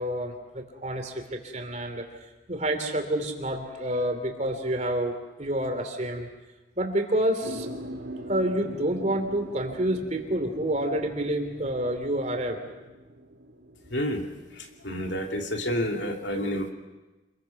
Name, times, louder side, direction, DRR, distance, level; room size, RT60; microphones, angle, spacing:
voice 1, 0.0-2.0 2.5-5.1 5.4-6.3 6.8-7.7 8.3-12.6, right 1 dB, 40° right, 5 dB, 3.0 m, -28 dB
sound 1, 7.4-14.9, right 1 dB, 65° right, 2.2 m, -42 dB
voice 2, 13.9-14.2 14.6-16.7, equal, 75° left, 2 dB, 2.8 m, -29 dB
27.5 x 22.0 x 5.9 m, 1.1 s
head